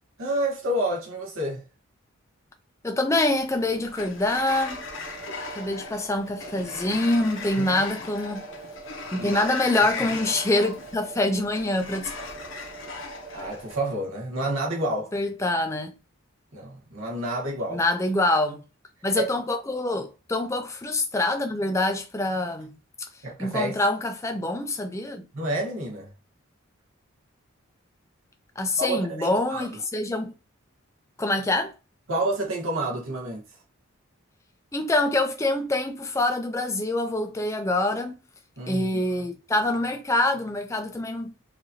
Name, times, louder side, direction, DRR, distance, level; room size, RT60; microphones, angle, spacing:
voice 1, 0.2-1.6 7.6-7.8 9.2-9.5 10.0-10.1 13.3-15.1 16.5-17.8 19.1-19.2 23.2-23.7 25.3-26.1 28.8-29.6 32.1-33.4 38.6-38.9, right 1 dB, 70° right, 1.0 m, -29 dB
voice 2, 2.8-4.8 5.5-8.4 9.1-12.1 15.1-15.9 17.7-18.6 19.0-22.8 23.4-25.3 28.6-30.3 31.2-31.7 34.7-38.2 38.7-41.3, left 2 dB, 15° left, 0.4 m, -25 dB
Sliding door, 3.2-13.7, left 4 dB, 60° left, 0.9 m, -38 dB
sound 1, 4.6-14.0, right 4 dB, 85° right, 1.9 m, -44 dB
4.7 x 2.6 x 2.7 m
head